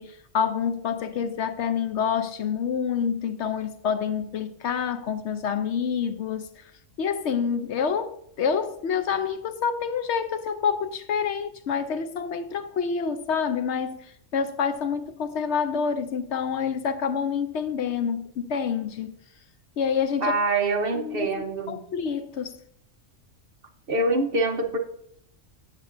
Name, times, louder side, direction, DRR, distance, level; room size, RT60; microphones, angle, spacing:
voice 1, 0.0-6.6 7.0-19.1 19.8-20.3 20.9-22.5, left 6 dB, 70° left, 0.9 m, -27 dB
voice 2, 20.2-21.8 23.9-24.8, right 2 dB, 50° right, 1.0 m, -25 dB
16.0 x 6.6 x 2.5 m
omnidirectional pair, 1.3 m